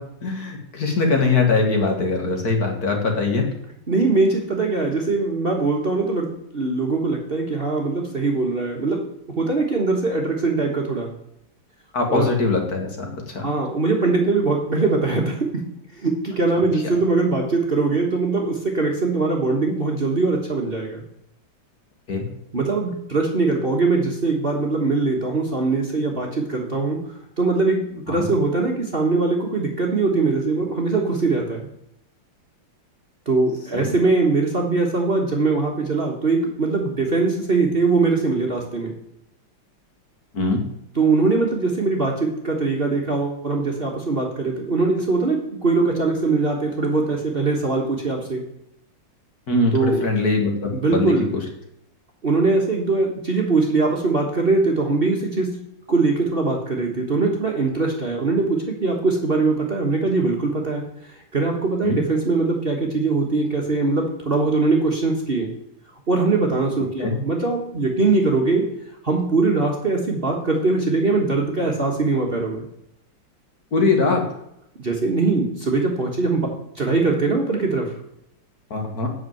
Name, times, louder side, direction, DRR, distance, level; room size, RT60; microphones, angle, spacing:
voice 1, 0.2-3.5 11.9-13.5 22.1-22.2 28.1-28.3 33.7-33.9 40.3-40.6 49.5-51.1 61.8-62.0 67.0-67.1 73.7-74.2 78.7-79.1, left 3 dB, 50° left, 2 dB, 2.2 m, -21 dB
voice 2, 3.9-9.0 9.4-11.1 12.1-12.3 13.4-15.7 15.9-21.0 22.5-27.0 27.4-31.7 33.3-38.9 40.9-48.4 49.7-50.0 50.7-51.3 52.2-55.6 55.9-65.5 66.1-68.6 69.0-72.6 74.8-76.5 76.7-77.9, right 3 dB, 35° right, 0 dB, 1.4 m, -21 dB
8.4 x 6.4 x 7.7 m, 0.80 s
omnidirectional pair, 2.1 m